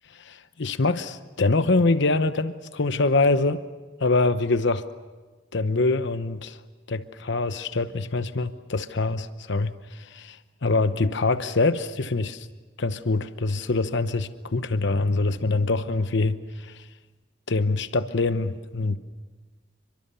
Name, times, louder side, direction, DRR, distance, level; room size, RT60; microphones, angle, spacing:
voice 1, 0.1-3.6 4.0-4.8 5.5-6.6 6.9-12.5 12.8-16.9 17.5-19.0, left 3 dB, 65° left, 0.9 m, -24 dB
28.5 x 24.0 x 7.0 m
head